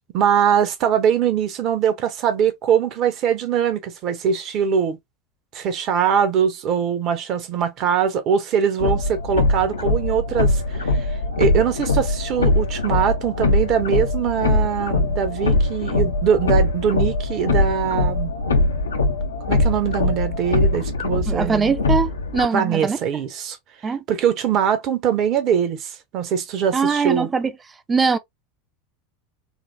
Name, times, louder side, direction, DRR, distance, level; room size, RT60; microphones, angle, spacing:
voice 1, 0.1-5.0 5.5-18.3 19.5-21.7 22.5-23.6 24.1-27.3, right 8 dB, 45° right, 0.8 m, -22 dB
sound 1, 8.8-22.5, left 2 dB, 75° left, 0.5 m, -21 dB
voice 2, 21.3-23.0 23.8-24.0 26.7-27.5 27.9-28.2, right 5 dB, 20° right, 0.5 m, -21 dB
3.9 x 2.0 x 2.6 m
figure-of-eight pair, 80°, 0 cm